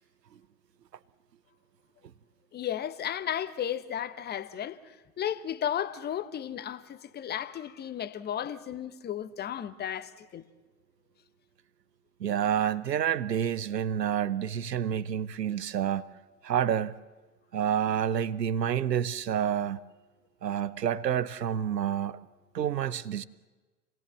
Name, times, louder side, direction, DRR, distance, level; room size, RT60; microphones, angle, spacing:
voice 1, 2.5-10.4, left 10 dB, 20° left, 1.0 m, -34 dB
voice 2, 12.2-16.1 16.4-16.9 17.5-19.8 20.4-22.2 22.5-23.2, right 9 dB, 80° right, 0.8 m, -28 dB
26.5 x 18.5 x 7.6 m
figure-of-eight pair, 90°, 48 cm